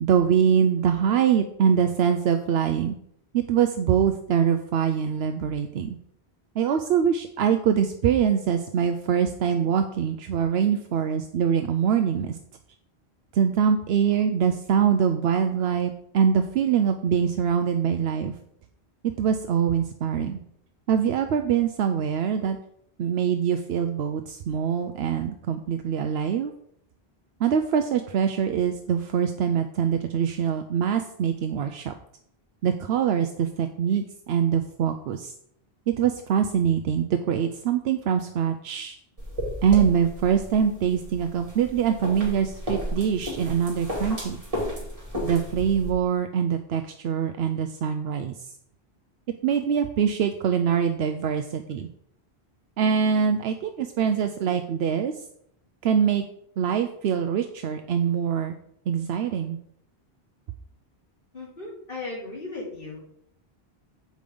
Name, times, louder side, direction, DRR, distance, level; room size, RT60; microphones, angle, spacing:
voice 1, 0.0-2.9 3.3-6.0 6.6-12.4 13.3-18.3 19.2-20.4 20.9-22.6 23.0-26.5 27.4-31.9 32.6-35.3 36.0-39.0 39.6-44.4 45.2-48.3 49.4-51.9 52.8-55.1 55.8-56.2 56.6-58.5 58.9-59.6, right 8 dB, 80° right, 7 dB, 0.8 m, -24 dB
sound 1, 39.2-45.9, equal, 35° right, 2.6 m, -33 dB
voice 2, 61.3-63.0, left 3 dB, 60° left, -5 dB, 3.2 m, -36 dB
7.7 x 5.0 x 5.3 m, 0.71 s
omnidirectional pair, 1.1 m